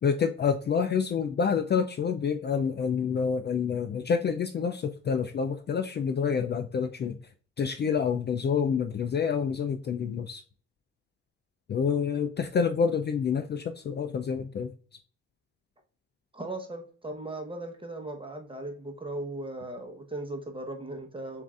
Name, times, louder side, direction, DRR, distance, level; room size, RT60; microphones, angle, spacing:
voice 1, 0.0-7.2 7.6-10.4 11.7-14.7, left 6 dB, 35° left, 7 dB, 0.4 m, -28 dB
voice 2, 16.3-21.4, right 2 dB, 15° right, 4 dB, 1.0 m, -38 dB
7.2 x 2.6 x 2.4 m, 0.41 s
cardioid pair, 90°, 30 cm